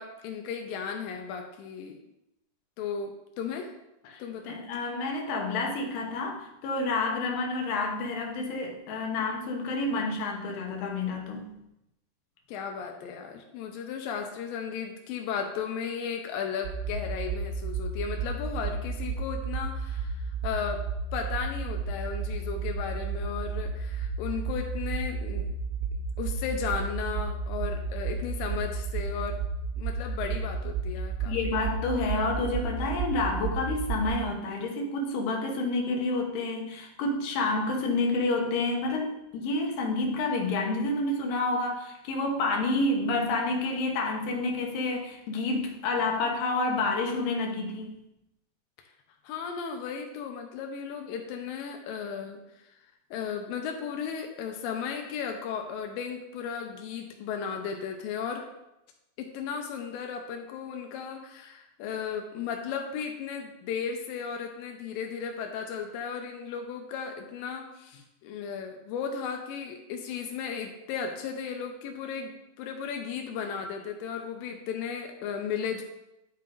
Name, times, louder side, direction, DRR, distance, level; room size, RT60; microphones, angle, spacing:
voice 1, 0.0-2.0 2.8-3.7 4.2-4.6 12.5-20.8 21.1-25.5 26.2-29.4 29.8-31.3 49.2-52.7 53.1-58.5 59.2-75.8, left 6 dB, 90° left, 3 dB, 2.0 m, -35 dB
voice 2, 4.1-11.5 31.2-48.0, left 2 dB, 70° left, 1 dB, 2.1 m, -29 dB
sound 1, 16.6-34.1, right 4 dB, 60° right, 2.1 m, -32 dB
11.0 x 5.6 x 2.5 m, 0.88 s
omnidirectional pair, 4.9 m